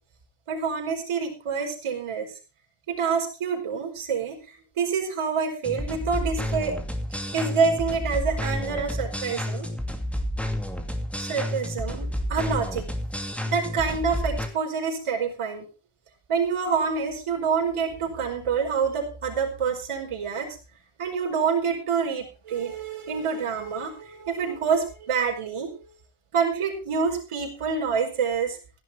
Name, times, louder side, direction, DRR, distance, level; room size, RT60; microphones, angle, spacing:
voice 1, 0.5-2.3 2.9-4.4 4.8-6.8 7.3-9.7 11.2-12.9 13.5-15.7 16.3-20.6 21.0-25.9 26.3-28.6, right 5 dB, 90° right, 2 dB, 5.1 m, -27 dB
sound 1, 5.6-14.5, left 1 dB, 5° left, 2.4 m, -30 dB
16.0 x 11.0 x 4.3 m, 0.34 s
wide cardioid pair, 135°, 50 cm